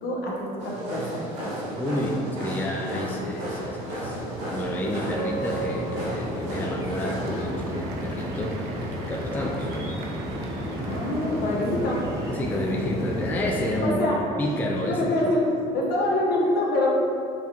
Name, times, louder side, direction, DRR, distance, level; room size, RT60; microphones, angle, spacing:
voice 1, 0.0-1.6 10.9-12.0 13.8-14.2 14.9-15.4 15.7-16.9, left 1 dB, 60° left, -4 dB, 1.0 m, -25 dB
sound 1, 0.6-7.4, right 1 dB, 85° right, 0.9 m, -33 dB
voice 2, 1.8-4.2 4.5-9.7 11.5-11.6 12.3-14.0 14.4-15.1, left 1 dB, 10° left, -1 dB, 0.3 m, -30 dB
sound 2, 2.8-13.8, equal, 15° right, 1.0 m, -33 dB
Applause / Crowd, 6.8-13.2, right 3 dB, 70° right, 0.5 m, -46 dB
5.3 x 2.3 x 3.0 m, 2.5 s
cardioid pair, 105°, 17 cm